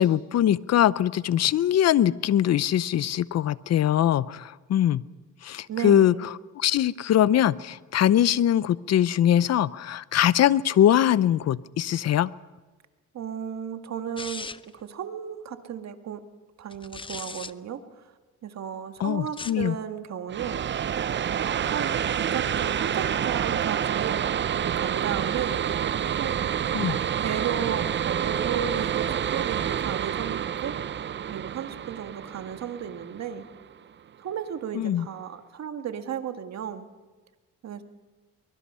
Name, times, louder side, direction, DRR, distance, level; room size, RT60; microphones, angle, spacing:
voice 1, 0.0-5.0 5.4-6.1 6.6-12.3 19.0-19.8 26.7-27.0 34.7-35.1, left 11 dB, 60° left, 19 dB, 0.7 m, -22 dB
voice 2, 5.7-6.3 13.1-16.2 16.6-17.8 18.4-20.8 21.2-24.2 24.6-25.6 26.2-26.5 26.9-30.8 31.3-33.5 34.2-36.9 37.6-37.8, right 8 dB, 60° right, 7 dB, 1.8 m, -34 dB
sound 1, 14.2-14.8 16.7-17.5 19.2-19.7, left 4 dB, 15° left, 0.6 m, -38 dB
sound 2, 20.3-33.7, right 9 dB, 40° right, 0.6 m, -28 dB
23.0 x 22.0 x 5.6 m, 1.3 s
cardioid pair, 90°, 30 cm